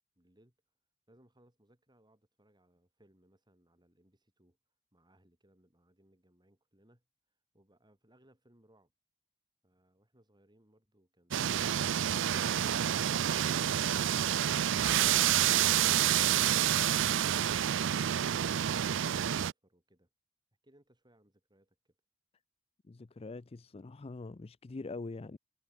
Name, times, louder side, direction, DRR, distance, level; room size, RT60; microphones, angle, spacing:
voice 1, 0.2-0.6 1.1-4.6 4.9-7.1 7.5-8.9 9.6-17.6 18.2-20.1 20.6-22.0, right 1 dB, 20° right, 8.0 m, -67 dB
sound 1, 11.3-19.5, right 10 dB, 65° right, 0.5 m, -28 dB
voice 2, 22.8-25.4, left 3 dB, 30° left, 0.5 m, -43 dB
head